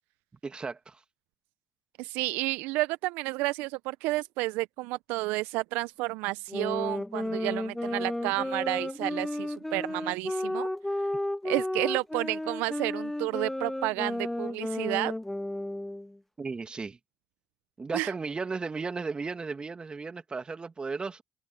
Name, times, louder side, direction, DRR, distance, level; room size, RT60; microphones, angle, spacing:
voice 1, 0.4-1.0 16.4-17.0 17.8-21.2, right 4 dB, 30° right, 2.6 m, -35 dB
voice 2, 2.0-10.7 11.4-15.1 17.9-18.1, right 21 dB, 70° right, 0.8 m, -31 dB
sound 1, 6.5-16.2, left 1 dB, 5° left, 0.6 m, -33 dB
hypercardioid pair, 55°, 3 cm